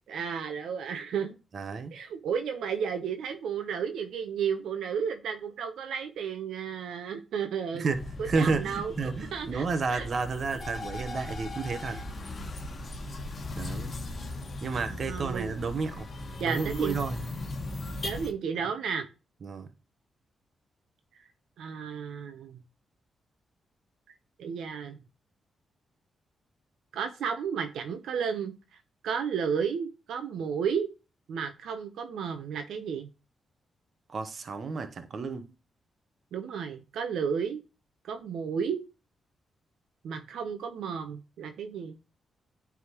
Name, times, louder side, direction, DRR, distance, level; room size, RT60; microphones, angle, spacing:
voice 1, 0.1-1.3 1.9-7.9 8.2-10.1 11.9-12.0 14.7-15.6 16.4-17.0 18.0-19.1 21.6-22.6 24.4-25.0 26.9-28.5 29.0-30.9 31.3-33.1 36.3-37.6 38.0-38.8 40.0-42.0, right 7 dB, 80° right, 0.7 m, -33 dB
voice 2, 1.5-1.9 7.7-12.0 13.6-13.9 14.6-16.1 16.5-17.2 19.4-19.7 34.1-35.5, right 4 dB, 55° right, 0.9 m, -31 dB
sound 1, 7.9-18.3, left 2 dB, 45° left, 1.4 m, -38 dB
9.5 x 3.6 x 2.9 m
cardioid pair, 65°, 0 cm